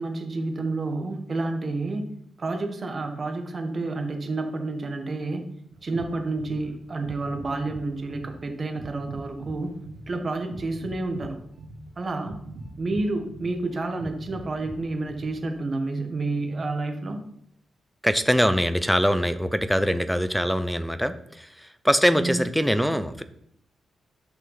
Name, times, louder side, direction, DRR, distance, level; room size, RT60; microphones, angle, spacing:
voice 1, 0.0-2.1 2.4-5.5 5.8-9.7 10.1-11.4 12.0-12.4 12.8-17.2 22.1-22.4, right 2 dB, 40° right, 5 dB, 1.3 m, -29 dB
sound 1, 5.7-15.6, right 2 dB, 90° right, 1.6 m, -42 dB
voice 2, 18.0-23.2, equal, ahead, 11 dB, 0.6 m, -23 dB
10.5 x 5.5 x 4.0 m, 0.71 s
cardioid pair, 110°, 0 cm